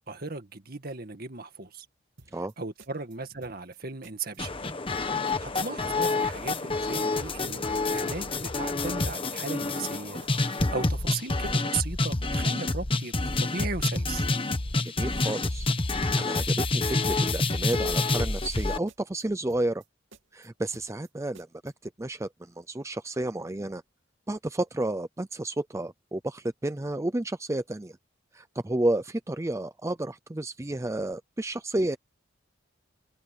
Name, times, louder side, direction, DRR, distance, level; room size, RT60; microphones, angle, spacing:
voice 1, 0.1-1.9 2.6-4.5 5.4-14.2, right 4 dB, 50° right, 2.0 m, -37 dB
sound 1, 2.2-2.5 2.8-3.8 4.0-4.4 4.6-5.0 5.3-6.2 6.5-6.9 7.1-7.5 7.7-8.7 9.0-9.3 9.6-10.0 10.2-11.2 11.4-11.8 12.1-12.4 12.7-13.7 13.9-14.3 14.5-14.9 15.2-16.1 16.4-16.8 17.0-17.4 17.6-18.6 18.9-19.2 19.5-19.9 20.1-21.1 21.3-21.7, right 3 dB, 75° right, 2.9 m, -54 dB
sound 2, 4.4-18.8, left 2 dB, 25° left, 1.2 m, -28 dB
voice 2, 14.8-19.8 20.3-23.8 24.3-28.0 28.3-32.0, right 1 dB, 15° right, 0.5 m, -31 dB
head